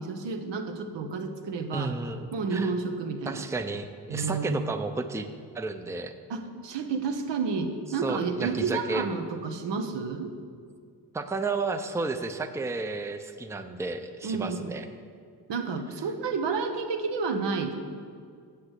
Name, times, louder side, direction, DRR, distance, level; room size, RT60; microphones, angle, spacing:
voice 1, 0.0-1.9 2.3-3.4 4.1-4.7 6.3-10.3 14.2-14.7 15.5-17.7, right 4 dB, 85° right, 6 dB, 1.1 m, -30 dB
voice 2, 1.7-2.7 3.3-5.3 5.5-6.1 8.0-9.1 11.1-14.9, right 3 dB, 5° right, 7 dB, 0.5 m, -32 dB
8.4 x 7.7 x 8.0 m, 2.1 s
wide cardioid pair, 120°, 42 cm